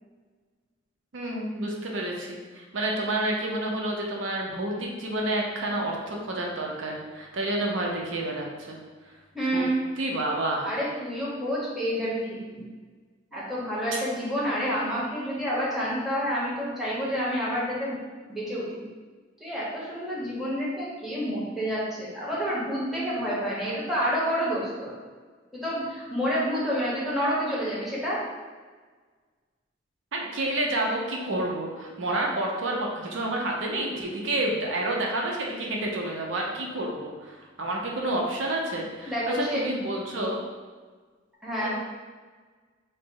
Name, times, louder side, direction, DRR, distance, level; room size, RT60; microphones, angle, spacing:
voice 1, 1.1-8.8 9.5-9.6 10.0-10.6 30.1-40.4 41.6-41.7, right 1 dB, 80° right, -1 dB, 0.6 m, -29 dB
voice 2, 9.3-9.8 10.6-12.6 13.3-18.0 18.3-18.8 19.4-24.9 25.5-28.2 39.0-39.6 41.4-41.7, equal, ahead, -8 dB, 0.9 m, -29 dB
3.8 x 2.0 x 3.7 m, 1.4 s
head